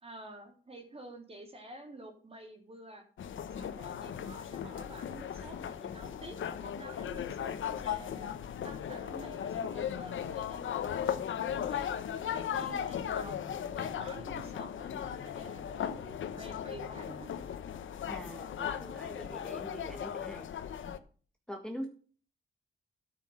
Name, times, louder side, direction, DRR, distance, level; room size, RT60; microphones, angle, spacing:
voice 1, 0.0-3.1 3.6-8.4 8.6-13.4 13.7-17.3, right 1 dB, 30° right, 4 dB, 3.6 m, -49 dB
sound 1, 3.2-21.0, left 9 dB, 85° left, 1.1 m, -37 dB
voice 2, 18.1-20.5 21.5-21.9, equal, 5° left, 2 dB, 1.6 m, -43 dB
13.0 x 6.2 x 7.3 m, 0.41 s
wide cardioid pair, 130°, 20 cm